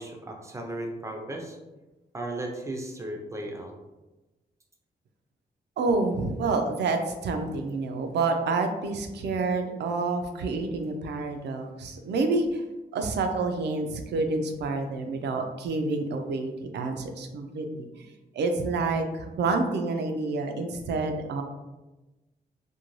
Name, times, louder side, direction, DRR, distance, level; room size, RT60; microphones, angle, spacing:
voice 1, 0.0-1.6 2.1-3.7, right 1 dB, 15° right, 2 dB, 0.4 m, -35 dB
voice 2, 5.8-12.6 12.9-18.1 18.3-21.4, right 3 dB, 90° right, 5 dB, 0.4 m, -28 dB
2.5 x 2.2 x 3.0 m, 1.1 s
wide cardioid pair, 115°, 17 cm